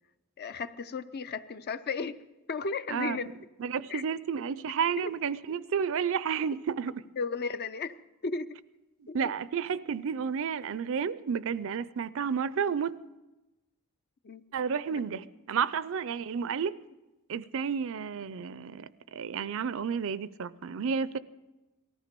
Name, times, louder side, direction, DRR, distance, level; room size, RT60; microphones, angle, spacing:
voice 1, 0.4-2.2 2.5-3.3 3.9-4.0 5.0-5.1 7.2-8.0 8.2-8.5 9.1-9.2 14.2-14.4 14.9-15.0, left 4 dB, 45° left, 0.5 m, -34 dB
voice 2, 3.6-6.9 9.1-12.9 14.5-16.7 17.3-21.2, right 6 dB, 65° right, 0.5 m, -31 dB
19.0 x 14.5 x 5.2 m
head